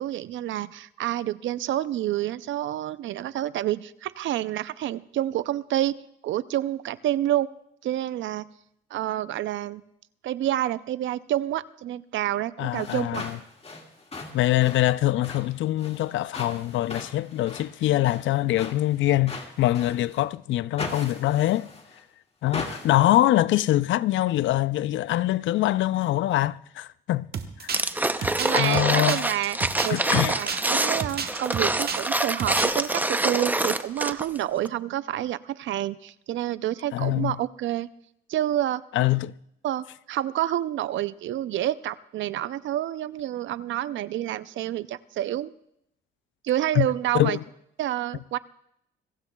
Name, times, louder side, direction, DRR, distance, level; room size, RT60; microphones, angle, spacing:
voice 1, 0.0-5.9 6.2-7.5 7.8-8.5 8.9-9.8 10.2-13.3 28.4-29.6 29.8-37.9 38.3-38.8 39.6-45.5 46.4-47.4 47.8-48.4, right 13 dB, 75° right, 0.5 m, -28 dB
voice 2, 12.6-13.4 14.3-21.7 22.4-27.3 27.6-27.7 28.2-29.2 29.9-30.4 36.9-37.4 38.9-39.3 46.8-46.9 47.1-47.4, left 15 dB, 75° left, 0.4 m, -24 dB
sound 1, 12.6-20.3 20.8-22.0 22.5-23.2, left 3 dB, 30° left, 2.1 m, -39 dB
sound 2, 27.3-32.1 32.4-32.9, right 6 dB, 50° right, 1.3 m, -32 dB
sound 3, 27.7-34.4 34.6-34.7, right 2 dB, 10° right, 0.6 m, -26 dB
26.0 x 15.5 x 2.3 m
cardioid pair, 90°, 20 cm